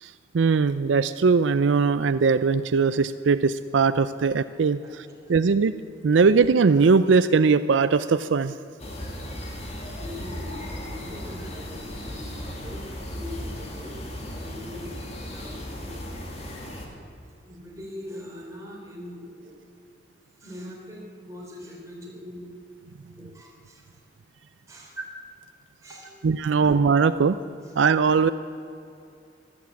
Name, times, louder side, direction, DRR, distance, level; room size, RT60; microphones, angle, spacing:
voice 1, 0.0-5.8 6.0-8.5 26.2-27.4 27.8-28.3, right 5 dB, 80° right, 13 dB, 0.5 m, -20 dB
voice 2, 4.8-5.3 9.9-16.1 17.4-19.6 20.4-22.5 23.2-24.1 24.7-25.0 25.8-26.2 26.5-26.7 27.6-27.7, left 1 dB, 15° right, -2 dB, 3.6 m, -42 dB
sound 1, 8.8-16.9, equal, 35° left, 2.4 m, -36 dB
13.5 x 13.0 x 8.4 m, 2.5 s
head